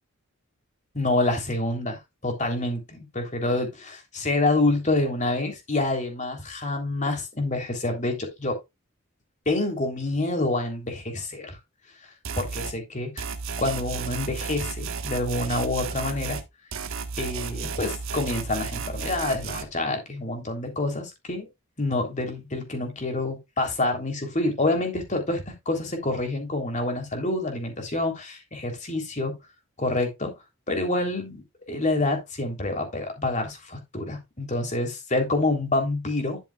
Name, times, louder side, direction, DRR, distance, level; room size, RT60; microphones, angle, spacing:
voice 1, 0.9-8.6 9.4-11.6 12.4-13.3 13.6-16.4 17.2-21.5 21.8-29.3 29.8-30.3 30.7-36.4, left 2 dB, 35° left, 3.4 m, -27 dB
sound 1, 12.2-12.8 13.2-16.5 16.7-19.6, right 5 dB, 70° right, 1.4 m, -33 dB
12.0 x 7.1 x 2.4 m
head